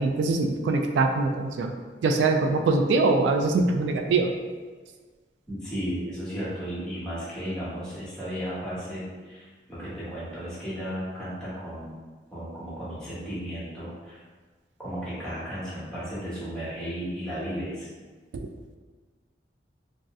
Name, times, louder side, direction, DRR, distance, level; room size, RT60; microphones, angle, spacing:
voice 1, 0.0-1.7 2.0-4.3 18.3-18.5, right 3 dB, 90° right, 4 dB, 0.3 m, -23 dB
voice 2, 5.5-12.0 12.3-14.2 14.8-17.9, equal, 5° left, -11 dB, 1.0 m, -34 dB
2.6 x 2.1 x 3.4 m, 1.4 s
head